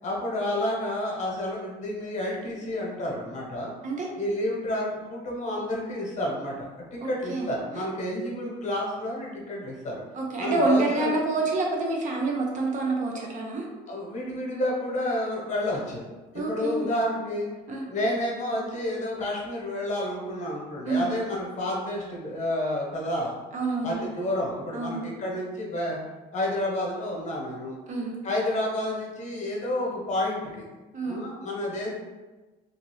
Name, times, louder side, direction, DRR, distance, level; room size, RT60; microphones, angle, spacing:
voice 1, 0.0-3.7 4.1-10.0 10.4-11.1 13.9-16.0 16.3-17.5 17.9-23.3 23.8-26.0 26.3-27.8 28.2-30.6 31.0-31.9, left 1 dB, 45° left, -3 dB, 1.0 m, -30 dB
voice 2, 7.0-7.5 10.1-13.7 16.3-16.9 17.7-17.8 20.9-21.2 23.5-24.1 24.7-25.1 27.9-28.1 30.9-31.3, right 3 dB, 45° right, -1 dB, 0.7 m, -27 dB
2.9 x 2.6 x 3.1 m, 1.2 s
cardioid pair, 110°, 17 cm